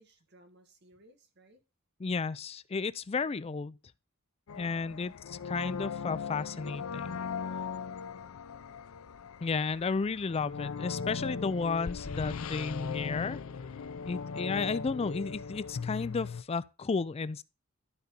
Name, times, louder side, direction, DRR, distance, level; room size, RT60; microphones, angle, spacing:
voice 1, 0.0-1.6 3.2-3.5, right 1 dB, 55° right, 1.7 m, -61 dB
voice 2, 2.0-3.8 4.6-7.2 9.4-13.4 14.0-17.4, left 4 dB, 30° left, 0.4 m, -33 dB
sound 1, 4.5-16.4, left 5 dB, 85° left, 0.5 m, -38 dB
12.0 x 4.1 x 5.2 m
head